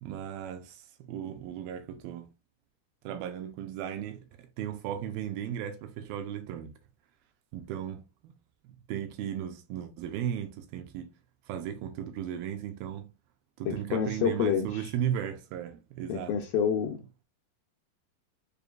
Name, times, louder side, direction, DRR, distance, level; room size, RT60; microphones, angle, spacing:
voice 1, 0.0-2.3 3.0-6.7 7.5-8.3 8.6-11.1 11.5-13.1 13.6-16.4, right 10 dB, 80° right, 2.2 m, -36 dB
voice 2, 13.7-14.9 16.1-17.0, left 7 dB, 85° left, 2.1 m, -28 dB
6.7 x 2.6 x 2.3 m
omnidirectional pair, 4.5 m